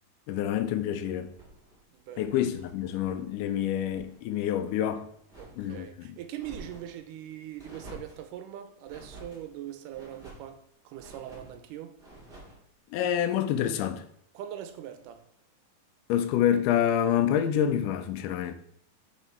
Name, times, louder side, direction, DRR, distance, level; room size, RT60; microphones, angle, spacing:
voice 1, 0.3-1.3 2.2-5.0 5.6-5.9 12.9-14.0 16.1-18.5, left 10 dB, 80° left, 2.1 m, -27 dB
sound 1, 1.2-3.3 3.6-4.2 4.6-5.9 6.3-7.0 7.6-8.3 8.8-9.4 9.9-10.5 10.9-11.6 12.0-12.6, right 2 dB, 20° right, 2.2 m, -49 dB
voice 2, 1.9-2.4 5.4-10.6 10.9-11.9 14.3-15.3, right 11 dB, 85° right, 2.2 m, -41 dB
6.3 x 5.4 x 4.4 m
omnidirectional pair, 3.7 m